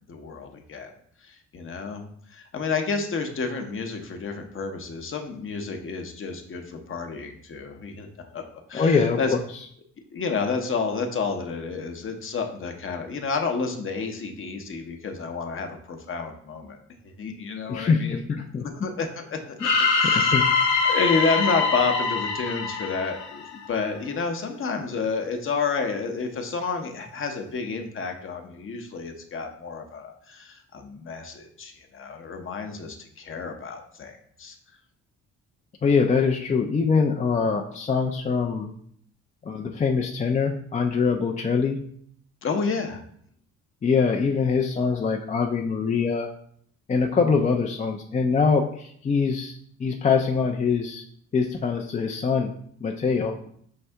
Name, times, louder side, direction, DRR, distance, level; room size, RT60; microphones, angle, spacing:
voice 1, 0.1-0.9 1.3-8.4 8.7-9.3 10.1-16.8 17.2-18.2 18.6-20.3 20.8-34.6 42.4-43.0, left 4 dB, 45° left, 4 dB, 0.8 m, -30 dB
voice 2, 8.7-9.4 17.7-18.6 19.6-20.5 35.8-38.7 39.5-41.8 43.8-46.3 46.9-49.5 49.8-51.0 51.3-52.5 52.8-53.4, left 5 dB, 25° left, 2 dB, 0.4 m, -23 dB
sound 1, 19.6-23.7, left 4 dB, 75° left, 0.9 m, -23 dB
5.6 x 2.7 x 3.3 m, 0.64 s
cardioid pair, 90°, 30 cm